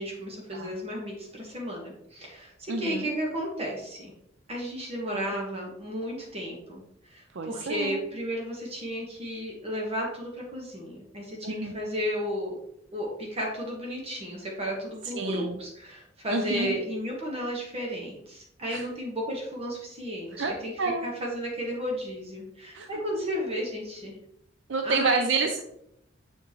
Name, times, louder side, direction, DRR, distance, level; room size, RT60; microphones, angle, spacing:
voice 1, 0.0-4.1 4.5-12.6 12.9-20.7 21.0-24.1 24.8-25.3, equal, 35° right, -2 dB, 1.3 m, -33 dB
voice 2, 2.7-3.1 5.1-5.3 7.3-8.1 11.4-11.8 15.0-15.6 16.3-16.8 18.7-18.8 20.3-21.1 22.7-23.3 24.7-25.6, right 4 dB, 70° right, 5 dB, 0.5 m, -30 dB
7.1 x 5.1 x 3.1 m, 0.78 s
head